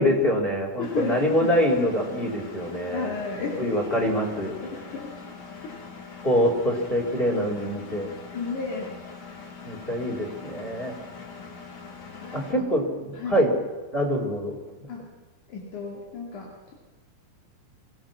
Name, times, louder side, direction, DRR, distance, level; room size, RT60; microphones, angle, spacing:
voice 1, 0.0-3.1 3.6-4.5 6.2-8.1 9.6-10.9 12.3-13.5 13.9-14.5, equal, 15° left, 1 dB, 4.0 m, -25 dB
voice 2, 0.8-1.6 2.9-4.1 4.6-5.1 8.3-9.0 12.2-12.7 13.1-13.4 14.9-15.1 15.5-16.7, left 4 dB, 75° left, -2 dB, 4.1 m, -33 dB
Engine, 0.8-12.5, left 5 dB, 35° left, 2.4 m, -43 dB
24.0 x 18.0 x 6.2 m, 1.3 s
omnidirectional pair, 3.5 m